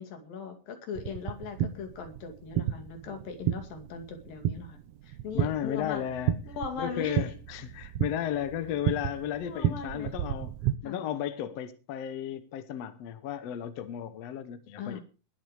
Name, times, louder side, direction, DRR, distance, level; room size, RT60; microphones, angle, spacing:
voice 1, 0.0-4.8 5.0-6.0 6.6-7.2 9.5-10.1 10.9-11.0 14.8-15.0, left 5 dB, 80° left, 4.1 m, -39 dB
sound 1, 1.0-10.8, right 11 dB, 80° right, 1.4 m, -33 dB
voice 2, 5.3-6.4 6.8-10.5 10.8-15.0, left 10 dB, 60° left, 1.8 m, -34 dB
20.0 x 8.1 x 4.8 m
omnidirectional pair, 4.0 m